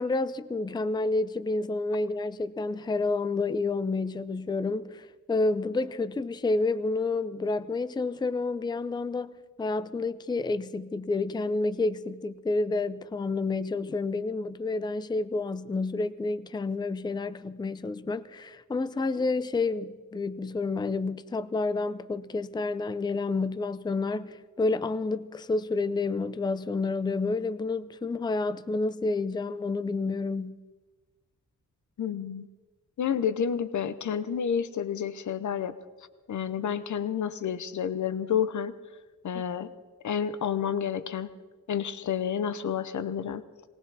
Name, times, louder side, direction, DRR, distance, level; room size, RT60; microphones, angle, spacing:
voice 1, 0.0-9.3 9.6-30.6, left 3 dB, 15° left, 0.4 m, -29 dB
voice 2, 32.0-32.5 33.0-35.8 36.3-38.7 39.2-39.7 40.0-41.3 41.7-43.4, left 8 dB, 60° left, 0.8 m, -30 dB
19.5 x 18.0 x 4.1 m
wide cardioid pair, 115°, 33 cm